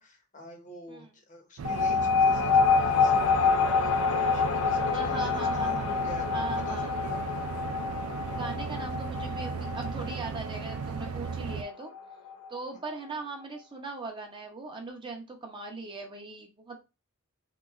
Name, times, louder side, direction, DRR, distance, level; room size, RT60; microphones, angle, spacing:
voice 1, 0.0-7.2, left 2 dB, 35° left, 4 dB, 0.8 m, -45 dB
sound 1, 1.6-12.6, left 5 dB, 80° left, 0.4 m, -27 dB
sound 2, 1.6-11.6, right 6 dB, 80° right, 0.4 m, -36 dB
voice 2, 4.9-6.0 6.3-6.9 8.4-11.9 12.5-16.8, right 3 dB, 20° right, 2 dB, 0.5 m, -39 dB
3.4 x 2.9 x 2.3 m, 0.27 s
head